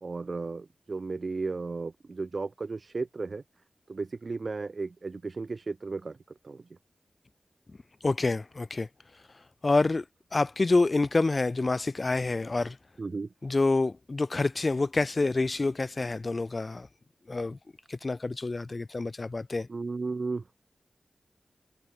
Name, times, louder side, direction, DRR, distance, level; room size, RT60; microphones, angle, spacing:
voice 1, 0.0-3.4 3.9-6.2 6.4-6.8 13.0-13.3 19.7-20.6, right 3 dB, 55° right, 1.1 m, -34 dB
voice 2, 8.0-10.1 10.3-12.8 13.4-16.9 17.3-17.6 17.9-19.7, left 3 dB, 45° left, 1.2 m, -27 dB
cardioid pair, 55°, 0 cm